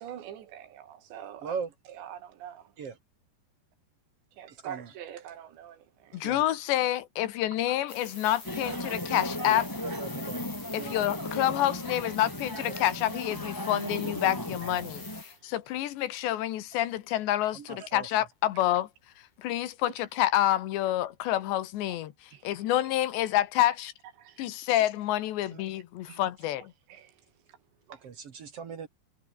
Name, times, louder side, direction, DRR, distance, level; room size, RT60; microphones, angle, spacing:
voice 1, 0.0-1.6 1.9-2.7 4.4-6.2 8.6-8.8 9.5-9.6 9.9-10.0 12.5-12.7 14.6-14.7 22.3-22.5 24.2-24.4 26.1-26.2 26.9-27.2 27.9-28.1, right 10 dB, 85° right, 4.7 m, -44 dB
voice 2, 1.4-1.7 2.8-3.0 4.6-4.9 6.2-6.4 9.8-10.4 10.7-11.1 17.5-18.1 25.5-25.6 27.9-28.9, right 6 dB, 50° right, 2.0 m, -39 dB
voice 3, 6.1-9.7 10.7-18.9 19.4-23.9 24.4-26.7, left 13 dB, 85° left, 3.7 m, -28 dB
sound 1, 7.9-15.4, left 3 dB, 35° left, 9.0 m, -46 dB
sound 2, 8.4-15.2, left 1 dB, 5° left, 3.6 m, -36 dB
omnidirectional pair, 5.0 m